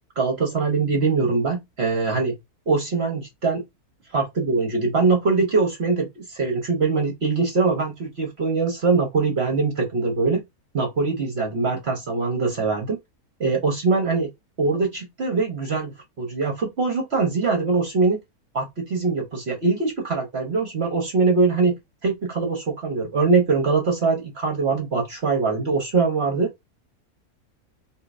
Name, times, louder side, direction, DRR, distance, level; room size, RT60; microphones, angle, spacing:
voice 1, 0.2-2.3 2.7-3.6 4.1-10.4 10.7-13.0 13.4-14.3 14.6-15.9 16.2-18.2 18.5-21.7 22.0-26.5, right 4 dB, 50° right, 1.0 m, -22 dB
5.0 x 2.7 x 2.5 m
omnidirectional pair, 1.6 m